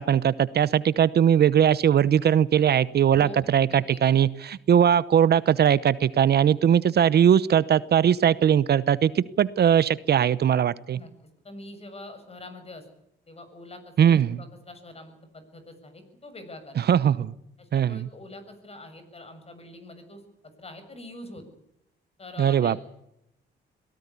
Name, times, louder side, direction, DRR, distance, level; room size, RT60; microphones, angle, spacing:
voice 1, 0.0-11.0 14.0-14.4 16.8-17.3 17.7-18.1 22.4-22.8, right 9 dB, 55° right, 17 dB, 0.9 m, -20 dB
voice 2, 3.1-4.3 4.7-4.8 10.9-11.1 11.4-12.8 13.3-16.9 17.6-20.2 20.6-21.4 22.2-22.8, left 1 dB, 30° left, 9 dB, 7.1 m, -44 dB
23.5 x 18.0 x 8.4 m, 0.82 s
cardioid pair, 90°, 20 cm